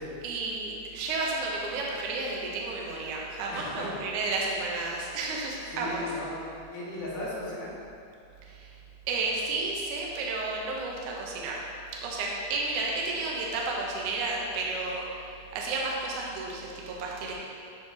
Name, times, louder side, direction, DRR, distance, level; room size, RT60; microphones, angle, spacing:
voice 1, 0.2-6.0 8.4-8.7 9.1-11.6 12.0-15.1 15.5-17.3, right 3 dB, 75° right, -2 dB, 1.9 m, -32 dB
voice 2, 3.5-3.9 5.7-6.4 6.7-7.7, left 1 dB, 60° left, -9 dB, 3.2 m, -36 dB
11.0 x 4.8 x 2.9 m, 2.6 s
omnidirectional pair, 4.6 m